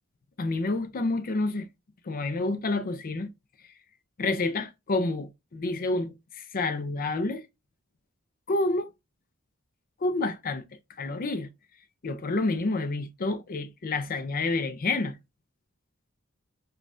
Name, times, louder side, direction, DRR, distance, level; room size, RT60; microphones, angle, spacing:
voice 1, 0.4-1.7 2.1-3.3 4.2-7.4 8.5-8.9 10.0-10.6 11.0-11.5 12.0-15.2, left 2 dB, 45° left, 0.5 m, -29 dB
5.3 x 2.3 x 2.4 m
head